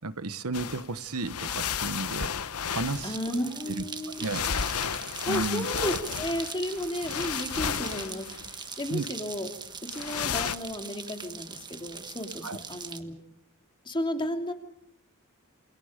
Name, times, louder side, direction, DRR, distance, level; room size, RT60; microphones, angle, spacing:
voice 1, 0.0-2.3 2.7-3.2 3.7-3.8 4.2-4.4 5.3-5.7 8.9-9.0 12.4-12.6, right 3 dB, 85° right, 1.3 m, -32 dB
sound 1, 0.5-0.9 1.1-3.5 4.2-8.8 9.9-10.6, left 7 dB, 85° left, 1.1 m, -33 dB
sound 2, 2.9-13.0, right 5 dB, 20° right, 1.4 m, -41 dB
voice 2, 3.0-4.6 5.3-9.5 9.8-13.2 13.8-14.5, equal, 20° left, 2.9 m, -33 dB
28.5 x 28.0 x 5.2 m
head